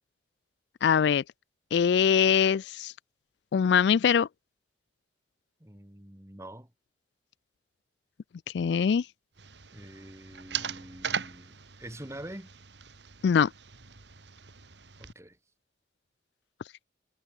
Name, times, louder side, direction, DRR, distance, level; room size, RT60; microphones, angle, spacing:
voice 1, 0.8-1.2 1.7-2.9 3.5-4.3 8.5-9.0 13.2-13.5, left 7 dB, 75° left, 0.3 m, -22 dB
voice 2, 5.6-6.7 9.7-12.5 15.0-15.4, right 1 dB, 15° right, 2.6 m, -45 dB
sound 1, 9.4-15.1, right 7 dB, 80° right, 1.9 m, -40 dB
head